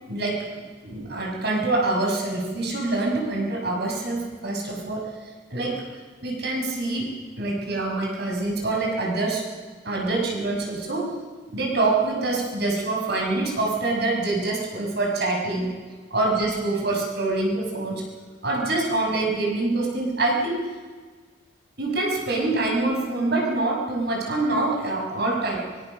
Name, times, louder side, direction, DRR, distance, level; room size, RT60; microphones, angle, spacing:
voice 1, 0.1-0.4 0.8-5.0 5.5-5.8 6.2-7.1 7.4-9.4 9.8-11.1 11.5-15.7 16.1-18.0 18.4-20.6 21.8-25.6, right 2 dB, 60° right, 0 dB, 6.0 m, -25 dB
23.5 x 20.5 x 6.6 m, 1.5 s
head